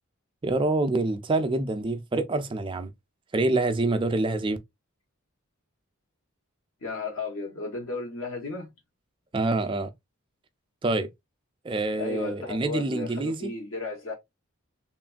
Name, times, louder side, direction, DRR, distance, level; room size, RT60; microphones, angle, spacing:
voice 1, 0.4-2.9 3.3-4.6 9.3-9.9 10.8-11.1 11.6-13.5, right 2 dB, 25° right, 0.3 m, -26 dB
voice 2, 6.8-8.7 12.0-14.1, left 3 dB, 70° left, 0.9 m, -34 dB
3.1 x 2.4 x 2.2 m
head